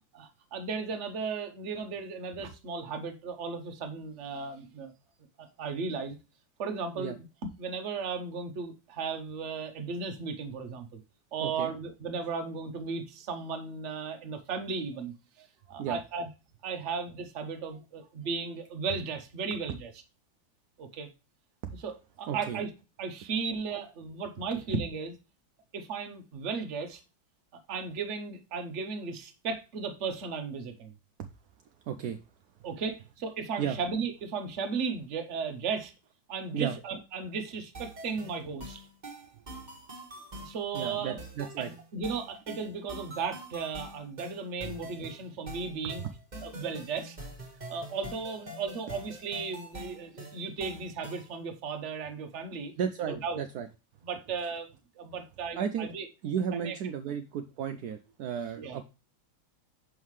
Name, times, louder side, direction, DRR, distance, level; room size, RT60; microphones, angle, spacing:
voice 1, 0.1-4.9 5.4-6.2 6.6-7.1 7.4-11.0 11.3-15.1 15.7-16.3 16.6-19.9 20.8-21.1 21.8-22.7 23.0-25.1 25.7-27.0 27.7-30.9 32.6-35.9 36.3-38.8 40.3-41.2 41.6-41.7 41.9-46.0 46.4-47.2 47.7-52.7 53.1-53.4 54.0-56.1 56.6-56.7 58.6-58.8, right 5 dB, 45° right, 7 dB, 1.0 m, -35 dB
voice 2, 22.3-22.6 31.2-31.3 31.9-32.2 33.6-33.8 36.5-36.8 40.7-41.7 44.7-44.8 45.8-46.1 52.8-53.7 55.5-55.9 56.2-58.8, right 8 dB, 75° right, 7 dB, 0.9 m, -34 dB
sound 1, 37.7-51.4, right 1 dB, 25° right, 1.4 m, -45 dB
6.4 x 5.5 x 3.1 m, 0.29 s
omnidirectional pair, 2.2 m